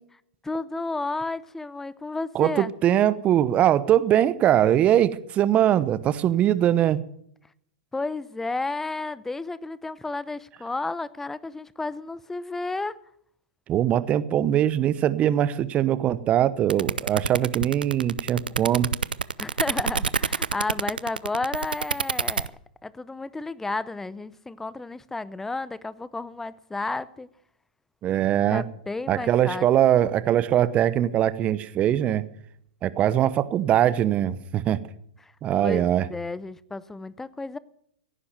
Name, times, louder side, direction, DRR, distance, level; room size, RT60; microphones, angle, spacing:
voice 1, 0.4-2.7 7.9-12.9 19.4-22.5 22.8-27.3 28.5-29.7 35.2-35.3 35.6-37.6, left 3 dB, 5° left, 0.6 m, -32 dB
voice 2, 2.3-7.0 13.7-18.9 28.0-28.6 29.1-32.2 32.8-34.8 35.4-36.1, right 11 dB, 30° right, 0.9 m, -22 dB
sound 1, 16.7-22.5, right 6 dB, 85° right, 0.5 m, -26 dB
16.5 x 9.8 x 7.7 m
hypercardioid pair, 115°, 5 cm